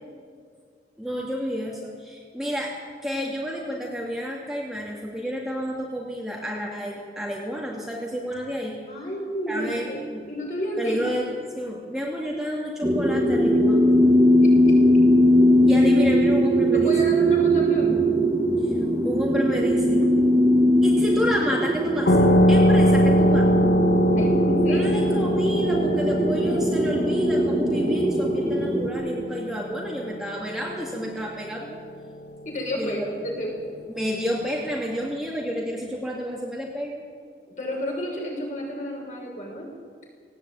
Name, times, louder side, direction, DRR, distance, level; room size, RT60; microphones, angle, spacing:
voice 1, 1.0-2.7 3.0-8.8 9.5-10.2 10.8-11.3 11.5-14.0 15.7-16.9 18.6-18.8 19.0-20.0 20.8-23.5 24.7-31.8 32.8-33.3 33.9-37.0, equal, ahead, -4 dB, 2.4 m, -30 dB
voice 2, 8.9-10.0 10.3-11.0 14.4-14.8 15.7-15.9 16.7-18.0 24.2-24.3 24.6-24.9 32.4-33.7 37.6-39.7, equal, 45° left, -1 dB, 6.4 m, -31 dB
sound 1, 12.8-28.9, equal, 20° right, 1.8 m, -20 dB
sound 2, 22.1-31.3, equal, 85° left, 2.2 m, -22 dB
18.5 x 17.0 x 9.0 m, 2.1 s
head